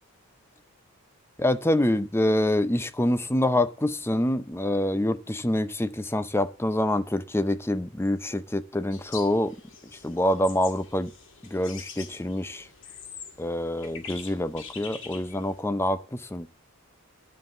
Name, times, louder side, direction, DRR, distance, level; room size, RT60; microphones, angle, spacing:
voice 1, 1.4-9.6 10.0-11.1 11.5-12.7 13.4-16.5, left 1 dB, 10° left, 0.6 m, -26 dB
sound 1, 8.9-15.6, left 6 dB, 60° left, 2.0 m, -44 dB
10.5 x 7.4 x 8.0 m
head